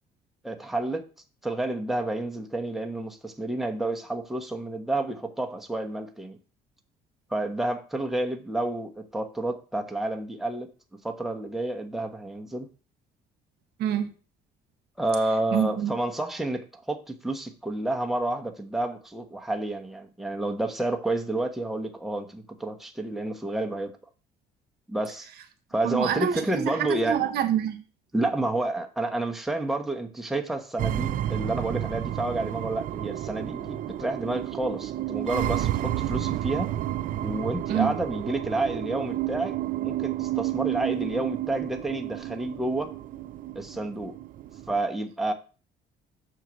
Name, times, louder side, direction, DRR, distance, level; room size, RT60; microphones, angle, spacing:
voice 1, 0.4-1.1 1.4-6.4 7.3-10.7 11.0-12.7 15.0-23.9 24.9-25.3 25.7-27.2 28.1-36.7 37.2-42.9 43.5-44.2 44.7-45.3, right 2 dB, ahead, 1.1 m, -30 dB
voice 2, 15.5-15.9 25.8-27.8 37.7-37.9, right 10 dB, 70° right, 1.2 m, -26 dB
sound 1, 30.8-44.8, right 13 dB, 55° right, 0.5 m, -31 dB
6.5 x 4.5 x 6.2 m
cardioid pair, 110°, 17 cm